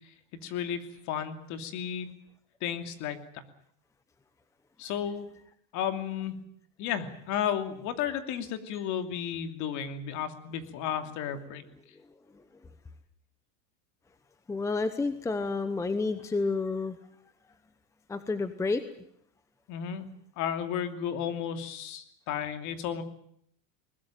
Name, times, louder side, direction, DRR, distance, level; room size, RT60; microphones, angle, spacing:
voice 1, 0.4-2.1 2.6-3.2 4.8-5.3 5.7-6.3 6.8-11.6 19.7-20.1 20.4-23.0, left 9 dB, 45° left, 8 dB, 2.8 m, -33 dB
voice 2, 14.5-17.0 18.1-18.9, left 3 dB, 5° left, 11 dB, 0.9 m, -30 dB
21.0 x 20.5 x 9.1 m, 0.68 s
supercardioid pair, 155°, 41 cm